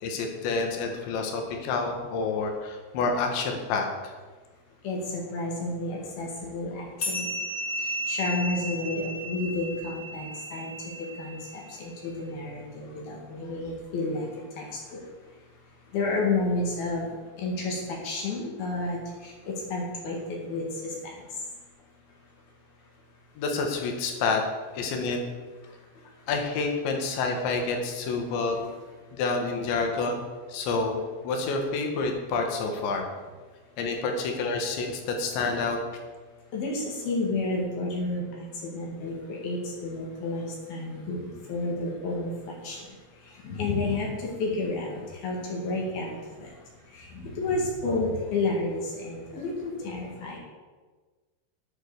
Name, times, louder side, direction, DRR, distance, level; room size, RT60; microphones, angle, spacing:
voice 1, 0.0-4.1 23.4-24.4 24.7-25.2 26.3-28.7 29.2-30.2 30.5-31.0 31.2-33.1 33.8-35.8, left 4 dB, 90° left, 3 dB, 4.1 m, -28 dB
voice 2, 4.8-7.3 7.8-10.7 11.2-14.3 14.6-14.7 15.9-17.1 17.4-19.0 19.2-19.3 19.7-21.1 36.5-42.8 43.4-44.1 44.4-46.5 46.9-50.4, left 2 dB, 60° left, -2 dB, 3.8 m, -31 dB
sound 1, 7.0-11.9, equal, 25° left, 2.5 m, -34 dB
10.5 x 9.8 x 7.1 m, 1.3 s
omnidirectional pair, 5.0 m